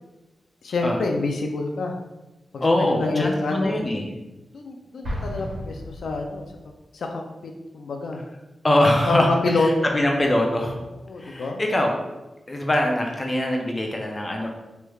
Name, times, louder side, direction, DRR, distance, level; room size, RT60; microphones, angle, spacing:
voice 1, 0.6-1.9 2.5-3.7 4.5-6.5 6.9-7.1 7.4-8.2 9.1-10.0 11.1-11.6, left 3 dB, 85° left, 3 dB, 0.3 m, -26 dB
voice 2, 2.6-4.1 8.6-10.8 11.2-11.9 12.5-14.5, left 1 dB, 30° left, 1 dB, 0.5 m, -22 dB
Explosion, 5.0-6.7, equal, 90° right, 1.3 m, -33 dB
3.1 x 3.1 x 2.3 m, 1.0 s
wide cardioid pair, 85°, 0 cm